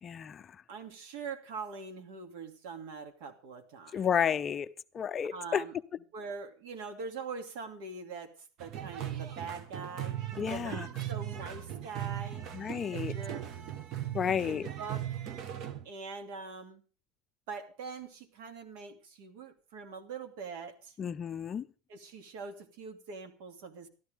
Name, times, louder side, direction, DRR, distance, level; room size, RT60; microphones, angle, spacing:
voice 1, 0.0-0.6 3.9-4.7 4.9-5.6 10.4-10.9 12.5-13.1 14.1-14.7 21.0-21.7, left 8 dB, 25° left, 0.5 m, -31 dB
voice 2, 0.7-4.1 5.3-5.7 6.1-10.8 11.1-12.5 12.9-13.6 14.2-15.0 15.8-16.8 17.5-21.0 21.9-23.9, right 4 dB, 70° right, 2.6 m, -43 dB
sound 1, 8.6-15.8, right 11 dB, 45° right, 1.3 m, -38 dB
13.0 x 12.0 x 5.1 m
supercardioid pair, 130°, 0 cm